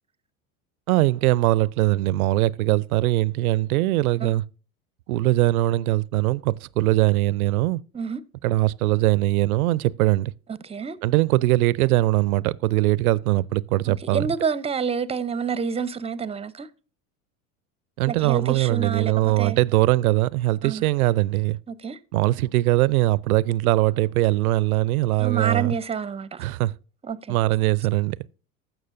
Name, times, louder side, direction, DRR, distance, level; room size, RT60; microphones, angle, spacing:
voice 1, 0.9-4.4 5.1-7.8 8.4-10.3 11.0-14.3 18.0-21.6 22.1-25.8 26.4-26.7 27.3-28.2, right 17 dB, 80° right, 0.5 m, -21 dB
voice 2, 10.6-11.0 13.9-16.7 18.1-19.6 20.6-20.8 21.7-22.0 25.2-26.4 27.0-27.3, right 6 dB, 15° right, 0.6 m, -28 dB
16.0 x 6.2 x 2.6 m
hypercardioid pair, 85°, 43 cm